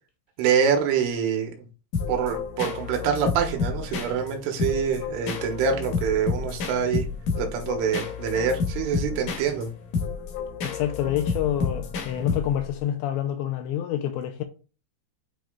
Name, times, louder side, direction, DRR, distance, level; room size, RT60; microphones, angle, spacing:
voice 1, 0.4-1.5 2.1-7.1 7.4-9.7, right 7 dB, 85° right, 3.7 m, -25 dB
sound 1, 1.9-12.8, left 5 dB, 70° left, 2.1 m, -30 dB
voice 2, 10.6-14.4, left 11 dB, 85° left, 2.7 m, -27 dB
9.0 x 3.0 x 3.8 m
omnidirectional pair, 5.6 m